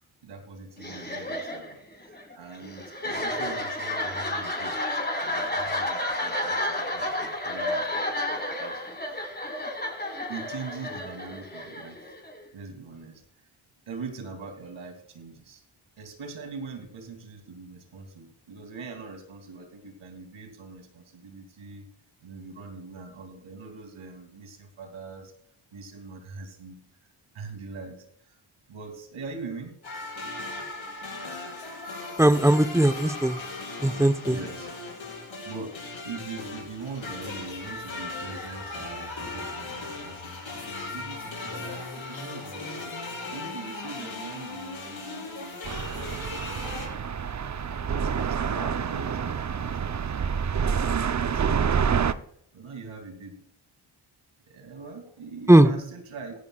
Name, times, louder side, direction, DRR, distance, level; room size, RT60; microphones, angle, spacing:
voice 1, 0.2-4.9 5.2-9.3 10.3-12.1 12.5-13.5 13.9-15.6 16.0-21.9 22.2-25.3 25.7-26.8 27.3-28.4 28.7-29.7 34.3-34.7 35.5-35.8 36.0-47.1 47.6-50.5 50.9-52.0 52.5-53.4 54.5-56.4, right 4 dB, 75° right, 4 dB, 2.9 m, -42 dB
sound 1, 0.8-12.5, left 1 dB, 20° left, 4.9 m, -31 dB
sound 2, 29.8-46.9, left 3 dB, 65° left, 6.4 m, -37 dB
voice 2, 32.2-33.4 33.8-34.4 55.5-55.7, right 1 dB, 5° right, 10 dB, 1.0 m, -18 dB
sound 3, 45.6-52.1, right 7 dB, 35° right, 0.7 m, -27 dB
16.5 x 15.0 x 2.4 m, 0.70 s
supercardioid pair, 45°, 49 cm